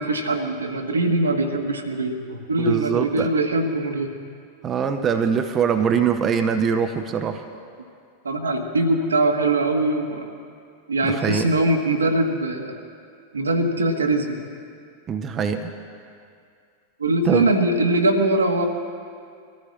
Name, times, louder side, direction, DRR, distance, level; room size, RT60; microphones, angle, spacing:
voice 1, 0.0-4.2 8.2-10.3 10.9-12.7 13.3-14.4 17.0-18.7, right 2 dB, 75° right, 4 dB, 1.4 m, -22 dB
voice 2, 2.6-3.3 4.6-7.5 11.0-11.6 15.1-15.7 17.2-17.5, right 7 dB, 25° right, 6 dB, 0.8 m, -23 dB
23.0 x 14.0 x 3.2 m, 2.3 s
figure-of-eight pair, 90°, 0 cm